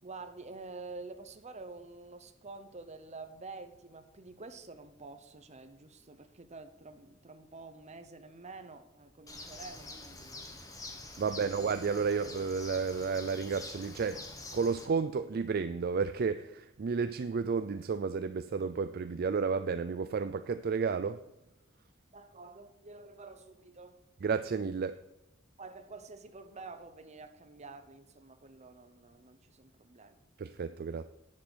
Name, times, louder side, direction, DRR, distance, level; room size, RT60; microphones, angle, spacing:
voice 1, 0.0-10.4 11.1-11.3 22.1-24.0 25.6-30.2, right 3 dB, 35° right, 9 dB, 0.9 m, -48 dB
Bird, 9.3-14.9, left 2 dB, 20° left, 1.4 m, -46 dB
voice 2, 11.2-14.3 14.5-21.2 24.2-25.0 30.4-31.1, right 5 dB, 50° right, 11 dB, 0.4 m, -32 dB
10.5 x 7.6 x 6.2 m, 0.88 s
head